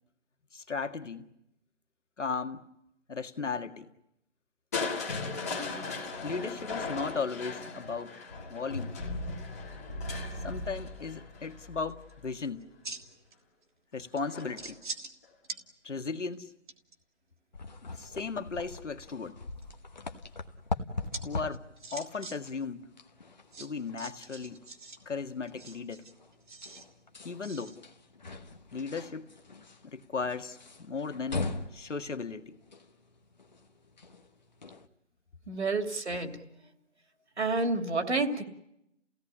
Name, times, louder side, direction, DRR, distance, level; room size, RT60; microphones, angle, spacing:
voice 1, 0.5-1.2 2.2-2.7 3.1-3.9 6.2-8.2 8.5-9.0 10.4-12.6 13.9-14.8 15.8-16.5 17.9-19.4 21.2-21.6 21.9-22.9 23.6-24.6 25.0-26.0 27.2-27.8 28.7-29.3 29.8-31.5 31.7-32.6, left 4 dB, 75° left, 8 dB, 1.9 m, -36 dB
Crushing, 4.7-12.7 14.2-14.7 15.2-15.3, left 3 dB, 15° left, 1.8 m, -37 dB
sound 1, 11.9-12.1 12.6-13.3 13.6-13.7 14.2-15.1 15.4-15.6 16.1-16.9 19.1-19.6 21.1-21.2 21.5-22.4 22.6-22.7 23.5-25.0 25.5-26.8 27.4-27.8, right 3 dB, 40° right, 1.9 m, -43 dB
sound 2, 17.5-34.9, left 3 dB, 35° left, 1.1 m, -42 dB
voice 2, 35.5-36.4 37.4-38.4, right 3 dB, 65° right, 6 dB, 2.7 m, -29 dB
30.0 x 17.0 x 9.9 m, 0.86 s
hypercardioid pair, 175°, 37 cm